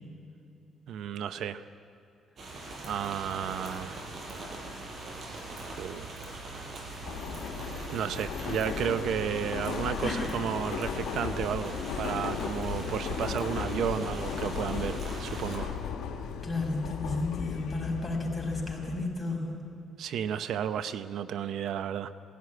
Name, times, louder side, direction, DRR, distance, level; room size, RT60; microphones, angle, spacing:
voice 1, 0.9-1.6 2.8-4.0 5.2-5.4 5.8-6.1 7.9-15.7 20.0-22.1, right 9 dB, 75° right, 12 dB, 0.7 m, -33 dB
sound 1, 2.4-15.6, right 2 dB, 55° right, 5.3 m, -41 dB
Subway metro underground, 7.0-19.0, left 7 dB, 80° left, 1.7 m, -36 dB
voice 2, 16.4-19.7, left 2 dB, 15° left, -1 dB, 5.8 m, -32 dB
18.5 x 16.5 x 9.5 m, 2.8 s
cardioid pair, 90°, 0 cm